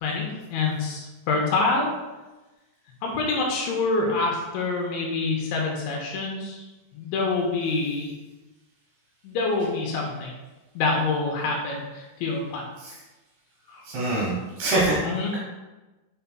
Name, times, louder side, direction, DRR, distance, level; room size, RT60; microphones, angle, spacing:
voice 1, 0.0-1.9 3.0-6.7 6.9-8.2 9.2-10.3 10.7-12.6 13.7-13.8 15.0-15.3, left 3 dB, 75° left, -1 dB, 3.0 m, -26 dB
voice 2, 13.8-15.0 15.3-15.4, right 2 dB, 70° right, -5 dB, 2.7 m, -25 dB
7.0 x 6.6 x 2.2 m, 1.1 s
omnidirectional pair, 5.6 m